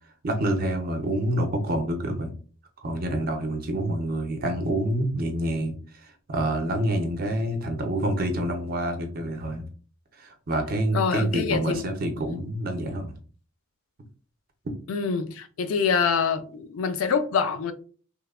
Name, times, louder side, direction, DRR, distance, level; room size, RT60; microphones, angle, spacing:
voice 1, 0.2-2.3 2.8-5.8 6.0-9.7 10.2-13.1, right 1 dB, 45° right, 0.5 m, -27 dB
voice 2, 10.9-11.8 14.9-17.7, left 6 dB, 80° left, 0.4 m, -25 dB
3.0 x 2.1 x 2.3 m
head